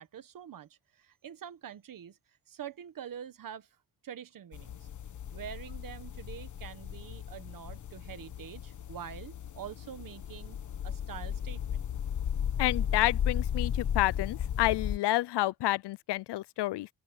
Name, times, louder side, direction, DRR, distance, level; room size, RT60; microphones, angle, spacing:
voice 1, 0.0-2.2 2.5-3.7 4.0-4.9 5.3-10.6 10.8-11.8, right 9 dB, 55° right, 1.2 m, -45 dB
sound 1, 4.5-15.0, left 9 dB, 45° left, 1.2 m, -35 dB
voice 2, 12.6-16.9, left 17 dB, 80° left, 0.6 m, -29 dB
open air
wide cardioid pair, 160°, 40 cm